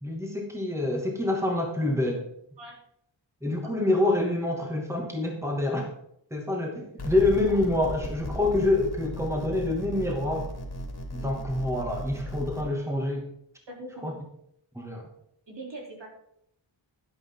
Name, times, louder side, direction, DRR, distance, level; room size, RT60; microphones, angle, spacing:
voice 1, 0.0-2.2 3.4-5.9 6.3-10.5 11.1-13.3 14.0-14.1 14.7-15.1, left 2 dB, 5° right, 1 dB, 2.4 m, -27 dB
sound 1, 7.0-12.6, equal, 55° left, 2.7 m, -36 dB
voice 2, 13.7-14.1 15.5-16.1, right 1 dB, 65° right, -1 dB, 3.8 m, -41 dB
11.5 x 10.5 x 3.9 m, 0.73 s
wide cardioid pair, 85°, 45 cm